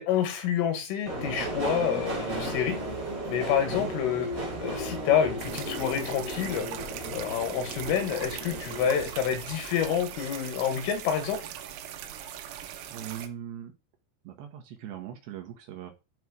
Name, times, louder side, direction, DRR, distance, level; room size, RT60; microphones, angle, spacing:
voice 1, 0.0-2.8 3.3-4.3 4.6-6.8 7.1-11.4, left 8 dB, 80° left, 7 dB, 4.0 m, -28 dB
Subway metro underground, 1.1-11.8 12.1-12.9 13.1-13.3, right 1 dB, 35° right, 1.3 m, -36 dB
sound 1, 5.4-13.3, right 10 dB, 90° right, 3.4 m, -41 dB
voice 2, 12.9-13.7 14.2-15.9, right 10 dB, 75° right, 4 dB, 2.8 m, -40 dB
8.2 x 3.1 x 6.1 m, 0.28 s
omnidirectional pair, 5.6 m